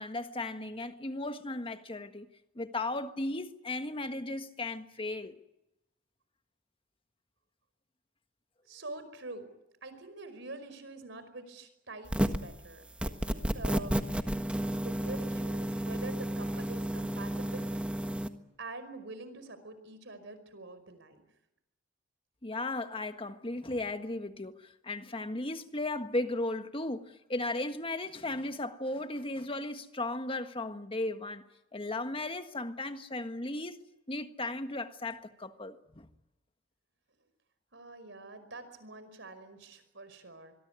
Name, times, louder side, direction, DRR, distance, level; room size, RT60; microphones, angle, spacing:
voice 1, 0.0-2.3 2.5-5.4 22.4-31.4 31.7-33.8 34.1-36.1, left 2 dB, 30° left, 1.6 m, -36 dB
voice 2, 8.7-9.5 9.8-14.0 14.8-17.8 18.6-21.2 37.7-40.6, right 2 dB, 65° right, 5.2 m, -45 dB
sound 1, 12.1-12.5 13.0-18.3, right 1 dB, 5° right, 1.4 m, -32 dB
25.0 x 23.0 x 9.6 m
head